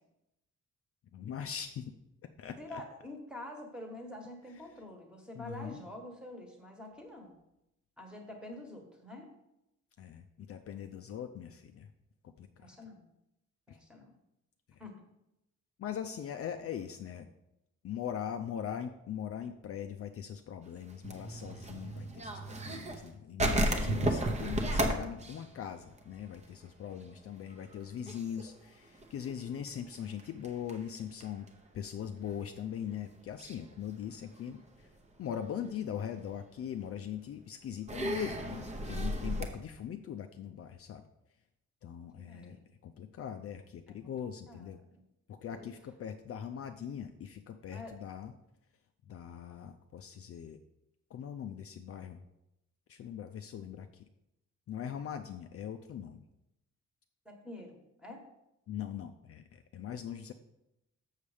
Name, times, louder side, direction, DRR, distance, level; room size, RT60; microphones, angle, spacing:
voice 1, 1.1-1.9 2.4-2.8 5.3-5.8 10.0-11.9 12.4-12.8 13.7-13.8 15.8-17.3 17.8-31.5 31.7-34.9 35.2-41.1 41.8-42.6 42.8-44.8 45.3-48.3 49.1-50.6 51.1-52.2 52.9-53.9 54.7-56.2 58.7-60.3, left 9 dB, 50° left, 7 dB, 0.5 m, -41 dB
voice 2, 2.6-7.3 8.0-9.3 12.6-13.0 13.7-14.1 14.8-14.9 42.0-42.6 43.9-45.0 45.5-45.7 47.7-47.9 57.2-58.3, left 1 dB, 5° right, 1 dB, 1.3 m, -47 dB
sound 1, 20.9-23.1 23.4-26.6 26.9-27.0 27.4-27.7 28.1-31.5 32.2-32.3 33.4-33.6 34.1-34.8 35.3-35.4 36.8-36.9 37.9-39.5, right 1 dB, 25° right, 0.8 m, -33 dB
7.0 x 6.5 x 4.9 m, 0.86 s
wide cardioid pair, 165°, 30 cm